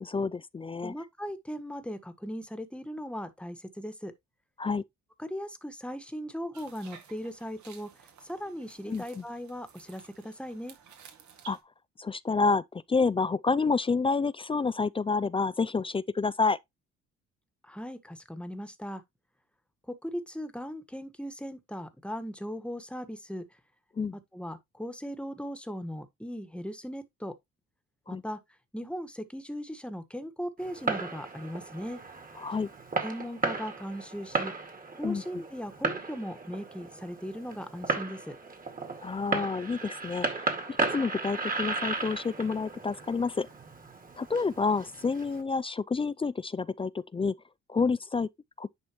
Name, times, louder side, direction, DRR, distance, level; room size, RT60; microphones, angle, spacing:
voice 1, 0.0-0.9 4.6-4.8 8.9-9.2 11.5-11.6 12.0-16.6 24.0-24.2 28.1-28.2 32.4-32.7 35.0-35.2 39.0-40.5 40.9-43.5 44.2-47.3 47.7-48.3 48.6-48.7, left 4 dB, 20° left, 0.3 m, -29 dB
voice 2, 0.8-4.1 5.2-10.8 17.6-19.0 19.9-23.5 24.1-27.3 28.1-28.4 28.7-32.0 33.0-34.5 34.9-38.4, equal, 5° left, 1.4 m, -38 dB
sound 1, 6.5-11.6, right 7 dB, 70° right, 2.1 m, -53 dB
Fireworks, 30.6-45.4, right 3 dB, 30° right, 2.1 m, -35 dB
10.5 x 4.3 x 3.0 m
cardioid pair, 90°, 30 cm